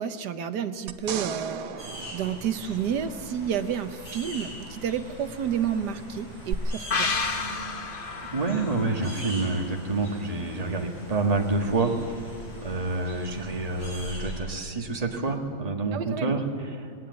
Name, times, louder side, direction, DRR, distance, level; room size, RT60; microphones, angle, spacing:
voice 1, 0.0-7.1 15.9-16.4, right 8 dB, 65° right, 11 dB, 1.3 m, -30 dB
sound 1, 0.9-3.4 6.5-6.6, right 9 dB, 85° right, 1.7 m, -35 dB
sound 2, 1.8-14.4, equal, 85° left, 7.6 m, -42 dB
sound 3, 6.9-10.4 10.7-10.8, left 4 dB, 35° left, 0.9 m, -32 dB
voice 2, 8.3-11.9 12.6-16.4 16.8-16.9, right 3 dB, 20° right, 3 dB, 1.6 m, -28 dB
20.0 x 17.5 x 9.4 m, 2.3 s
omnidirectional pair, 2.1 m